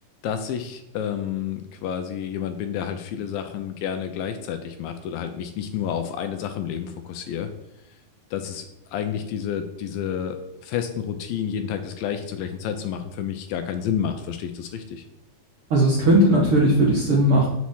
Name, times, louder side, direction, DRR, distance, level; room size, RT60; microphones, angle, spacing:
voice 1, 0.2-7.5 8.3-8.7 8.9-15.0, left 8 dB, 80° left, 7 dB, 2.2 m, -30 dB
voice 2, 15.7-17.5, right 1 dB, 70° right, -4 dB, 1.3 m, -17 dB
7.2 x 4.1 x 6.3 m, 0.90 s
omnidirectional pair, 4.4 m